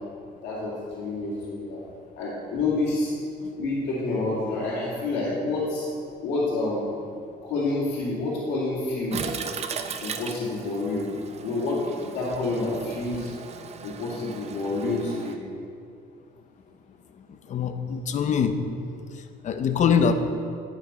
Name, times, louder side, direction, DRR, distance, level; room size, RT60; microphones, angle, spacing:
voice 1, 0.4-1.8 2.2-3.1 3.6-5.9 6.2-6.9 7.4-9.3 10.0-11.1 11.4-11.8 12.1-13.3 13.8-15.4, left 2 dB, 90° left, -8 dB, 2.3 m, -28 dB
Toilet flush, 9.1-15.3, right 6 dB, 40° right, 0.6 m, -37 dB
voice 2, 17.3-18.6 19.1-20.1, left 7 dB, 45° left, 8 dB, 0.7 m, -24 dB
9.8 x 6.4 x 4.3 m, 2.4 s
cardioid pair, 110°, 17 cm